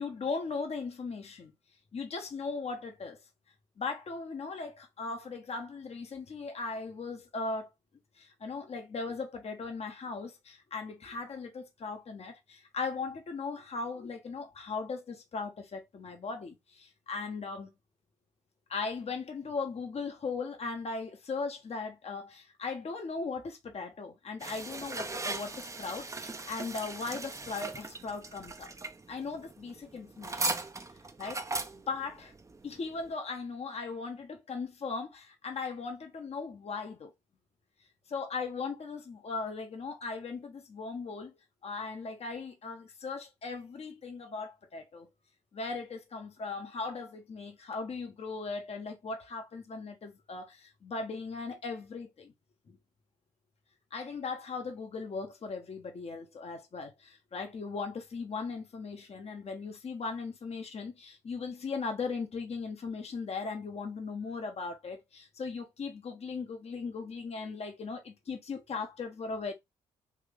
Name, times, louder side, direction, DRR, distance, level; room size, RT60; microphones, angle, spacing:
voice 1, 0.0-1.5 1.9-3.2 3.8-7.7 8.2-17.7 18.7-28.7 29.1-30.5 31.2-31.4 31.7-32.3 32.6-37.1 38.1-41.3 41.6-45.1 45.5-52.3 52.7-52.8 53.9-69.5, left 4 dB, 45° left, 1.0 m, -38 dB
sound 1, 24.4-33.1, right 3 dB, 20° right, 0.6 m, -39 dB
3.6 x 2.8 x 3.5 m
hypercardioid pair, 45°, 15 cm